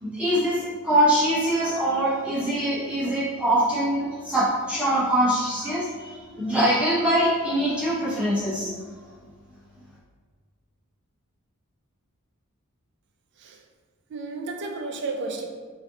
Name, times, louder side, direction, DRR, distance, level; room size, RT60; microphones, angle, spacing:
voice 1, 0.0-8.7, right 1 dB, 5° right, -10 dB, 1.0 m, -23 dB
voice 2, 14.1-15.5, right 3 dB, 55° right, 4 dB, 0.4 m, -32 dB
3.3 x 2.7 x 3.6 m, 1.5 s
head